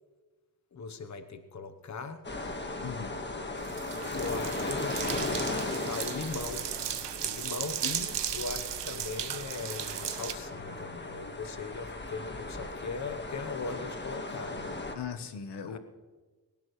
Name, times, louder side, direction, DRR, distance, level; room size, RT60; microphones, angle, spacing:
voice 1, 0.7-2.2 4.1-6.7 7.2-14.7 15.6-15.8, left 4 dB, 40° left, 9 dB, 1.0 m, -39 dB
sound 1, 2.2-15.0, left 2 dB, 25° left, 1.5 m, -37 dB
voice 2, 2.7-3.2 14.9-15.8, left 7 dB, 70° left, 9 dB, 1.1 m, -38 dB
sound 2, 3.6-10.3, right 10 dB, 80° right, 0.9 m, -36 dB
20.0 x 17.5 x 3.2 m, 1.3 s
wide cardioid pair, 105°, 42 cm